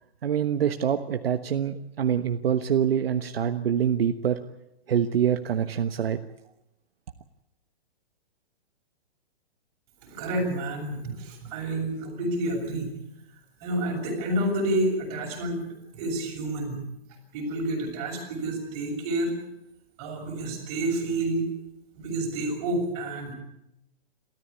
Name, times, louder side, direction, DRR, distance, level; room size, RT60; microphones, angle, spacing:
voice 1, 0.2-4.4 4.9-6.2, right 8 dB, 70° right, 7 dB, 1.3 m, -25 dB
voice 2, 10.0-13.0 13.6-15.6 15.9-16.8 17.3-19.3 20.0-21.5 21.9-23.3, right 1 dB, 30° right, 0 dB, 7.0 m, -29 dB
28.0 x 14.0 x 8.6 m, 0.87 s
hypercardioid pair, 170°, 30 cm